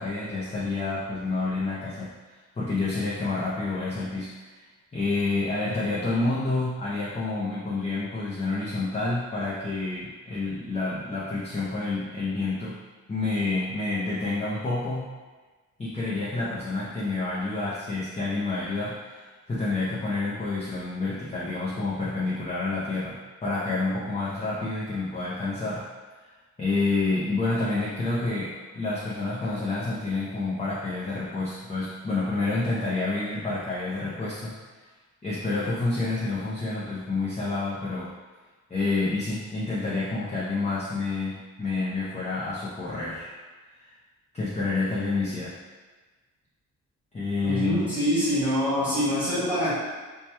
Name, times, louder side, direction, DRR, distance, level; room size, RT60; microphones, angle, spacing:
voice 1, 0.0-2.1 2.6-4.6 4.9-12.7 13.1-15.1 15.8-25.8 26.6-34.5 35.2-38.1 38.7-43.3 44.3-45.5 47.1-47.8, left 3 dB, 20° left, -9 dB, 0.5 m, -28 dB
voice 2, 47.4-49.8, equal, 5° right, -10 dB, 1.4 m, -25 dB
2.9 x 2.2 x 3.2 m, 1.3 s
wide cardioid pair, 115°, 32 cm